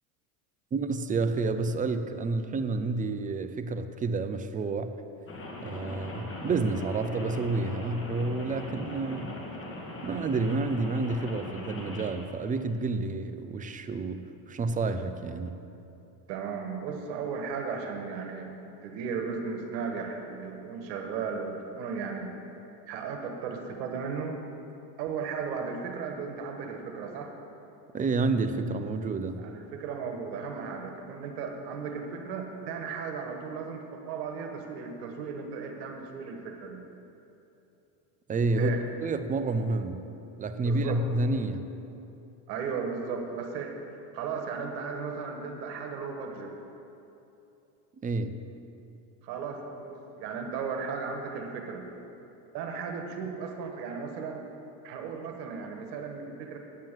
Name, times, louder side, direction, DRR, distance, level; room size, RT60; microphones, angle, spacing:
voice 1, 0.7-4.9 5.6-9.4 10.0-15.6 27.9-29.4 38.3-38.7 39.0-40.1 40.4-41.7 48.0-48.4, right 3 dB, 20° right, 9 dB, 0.4 m, -29 dB
Rain, 5.3-12.1, left 2 dB, 25° left, 2.0 m, -40 dB
voice 2, 16.3-18.6 18.8-22.3 22.9-24.4 25.0-27.3 29.4-36.9 38.5-38.8 40.6-41.0 42.5-46.5 49.2-51.9 52.5-54.4 54.8-56.6, right 5 dB, 80° right, 3 dB, 1.5 m, -35 dB
9.0 x 7.5 x 7.4 m, 2.8 s
supercardioid pair, 105°, 50 cm